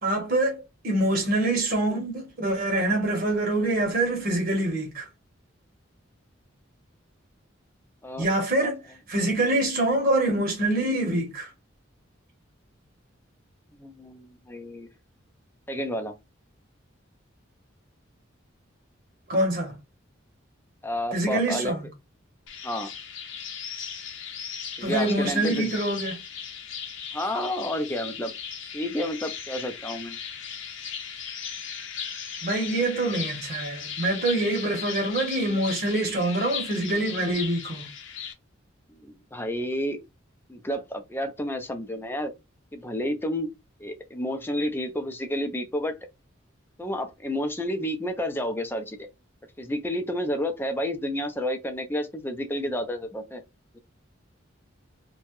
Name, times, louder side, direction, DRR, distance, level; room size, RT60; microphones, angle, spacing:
voice 1, 0.0-5.1 8.2-8.8 9.1-11.5 19.3-19.8 21.1-21.8 24.8-26.2 32.4-37.9, right 2 dB, 50° right, 1.0 m, -25 dB
voice 2, 13.7-14.9 15.7-16.1 20.8-21.7 22.6-22.9 24.8-25.7 27.1-28.3 28.7-30.2 38.9-40.0 40.5-42.3 42.7-43.5 43.8-45.9 46.8-49.1 49.6-53.4 53.7-53.8, equal, 10° left, 0.5 m, -30 dB
sound 1, 22.5-38.3, left 7 dB, 70° left, 0.7 m, -37 dB
2.8 x 2.2 x 2.9 m
head